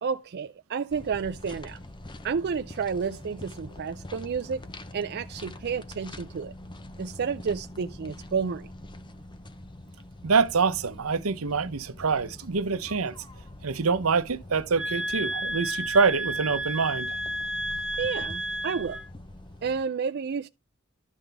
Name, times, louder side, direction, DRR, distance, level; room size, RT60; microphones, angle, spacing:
voice 1, 0.0-1.8 2.2-4.6 4.9-6.5 7.0-8.7 18.0-19.0 19.6-20.5, right 6 dB, 50° right, 0.4 m, -30 dB
sound 1, 0.9-19.8, left 1 dB, 20° left, 0.7 m, -45 dB
voice 2, 10.2-13.1 13.6-17.2, right 5 dB, 80° right, 0.8 m, -25 dB
sound 2, 14.8-19.1, right 1 dB, 5° right, 1.2 m, -32 dB
12.0 x 5.9 x 3.4 m
head